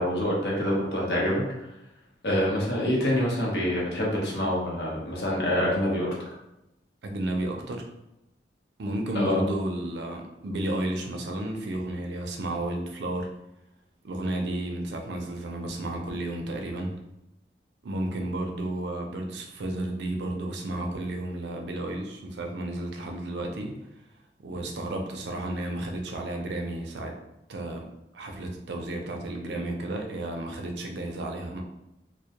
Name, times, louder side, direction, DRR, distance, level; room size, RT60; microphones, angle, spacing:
voice 1, 0.0-1.3 2.2-6.1 9.1-9.4, left 1 dB, 70° left, -4 dB, 0.8 m, -26 dB
voice 2, 7.0-7.9 8.8-13.3 14.0-17.0 17.8-23.8 24.4-27.1 27.5-27.9 28.1-31.6, right 1 dB, 75° right, 3 dB, 0.4 m, -32 dB
2.2 x 2.1 x 2.8 m, 0.87 s
head